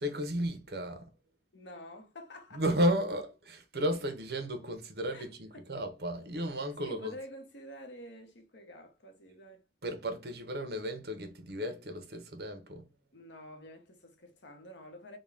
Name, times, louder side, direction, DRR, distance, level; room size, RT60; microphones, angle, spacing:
voice 1, 0.0-1.1 2.5-7.2 9.8-12.9, equal, 60° right, 0.9 m, -33 dB
voice 2, 1.5-2.6 5.1-5.3 5.5-5.7 6.8-9.6 13.1-15.2, left 1 dB, 85° left, 0.9 m, -48 dB
3.7 x 2.2 x 3.5 m
head